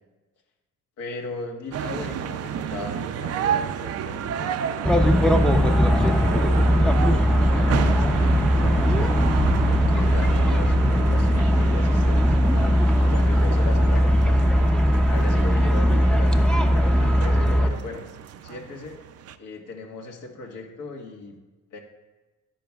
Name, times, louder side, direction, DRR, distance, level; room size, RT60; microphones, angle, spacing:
voice 1, 1.0-5.3 5.8-6.6 7.4-8.9 9.7-12.3 13.1-14.4 15.1-18.0 18.4-19.0 19.4-21.4 21.7-21.8, left 3 dB, 80° left, 1 dB, 1.7 m, -38 dB
sound 1, 1.7-19.3, right 8 dB, 50° right, 0.5 m, -31 dB
sound 2, 4.8-17.7, equal, ahead, 0.6 m, -19 dB
12.0 x 10.0 x 2.3 m, 1.2 s
cardioid pair, 105°, 31 cm